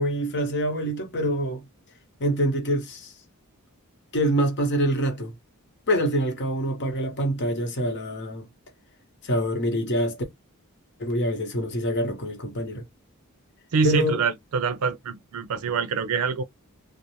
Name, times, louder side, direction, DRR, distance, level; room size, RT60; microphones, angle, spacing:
voice 1, 0.0-1.6 2.2-3.1 4.1-5.3 5.9-8.5 9.2-10.2 11.0-12.8 13.8-14.2, equal, 50° left, 0.9 m, -25 dB
voice 2, 13.7-16.4, right 5 dB, 75° right, 0.4 m, -25 dB
2.6 x 2.0 x 3.0 m
head